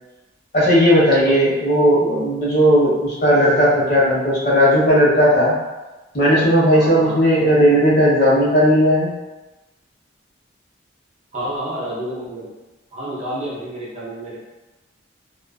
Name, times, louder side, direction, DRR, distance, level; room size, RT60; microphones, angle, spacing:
voice 1, 0.5-5.5 6.1-9.1, equal, 50° left, -7 dB, 0.8 m, -15 dB
voice 2, 6.7-7.2 11.3-12.5 12.9-14.4, right 1 dB, 35° right, -7 dB, 0.6 m, -29 dB
2.4 x 2.4 x 2.3 m, 1.1 s
head